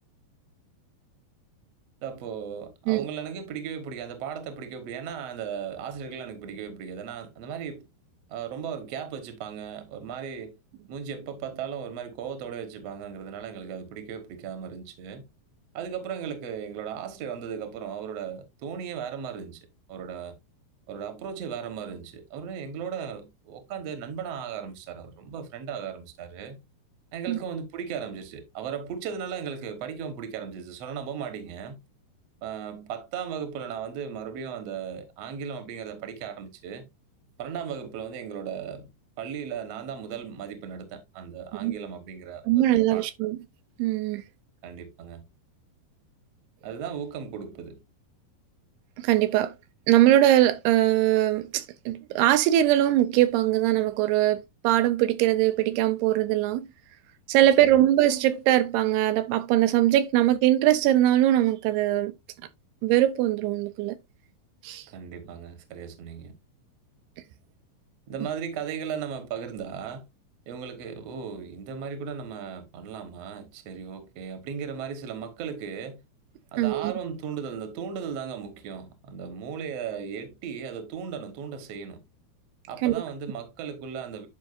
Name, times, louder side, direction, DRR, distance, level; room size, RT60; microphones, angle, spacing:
voice 1, 2.0-7.8 8.3-10.5 10.9-15.3 15.7-19.6 19.9-20.3 20.9-26.6 27.1-31.8 32.4-36.8 37.4-38.9 39.2-43.1 44.6-45.2 46.6-47.8 57.6-57.7 64.9-66.3 68.1-70.1 70.5-76.0 76.5-82.0 82.7-84.3, right 7 dB, 60° right, 1.8 m, -36 dB
voice 2, 42.5-43.4 43.8-44.2 49.0-49.5 49.9-56.7 57.3-62.1 62.8-64.0 64.6-64.9 76.6-76.9 82.8-82.9, right 13 dB, 85° right, 2.6 m, -21 dB
10.5 x 5.2 x 2.6 m
omnidirectional pair, 4.7 m